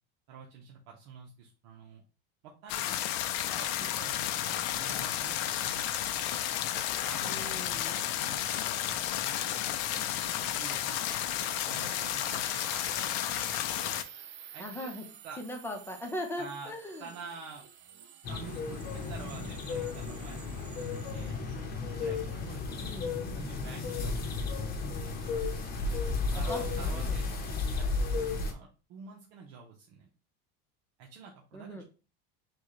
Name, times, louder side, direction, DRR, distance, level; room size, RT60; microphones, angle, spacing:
voice 1, 0.3-2.0 2.4-3.0 3.5-6.1 6.7-11.2 11.7-13.5 14.5-14.9 15.2-15.4 16.4-16.7 17.0-17.6 18.3-21.4 22.0-22.9 23.3-24.7 26.3-30.1 31.0-31.8, right 5 dB, 65° right, 0 dB, 0.9 m, -48 dB
sound 1, 2.7-14.0, left 12 dB, 70° left, 0.6 m, -32 dB
sound 2, 4.8-22.5, right 10 dB, 35° right, 0.5 m, -51 dB
voice 2, 7.2-8.0 14.6-15.0 15.4-17.0 22.7-23.1 26.3-27.2 31.5-31.8, left 1 dB, 5° left, 3 dB, 0.8 m, -40 dB
sound 3, 18.2-28.5, left 4 dB, 30° left, 0.9 m, -33 dB
6.1 x 2.4 x 3.1 m, 0.34 s
cardioid pair, 145°, 30 cm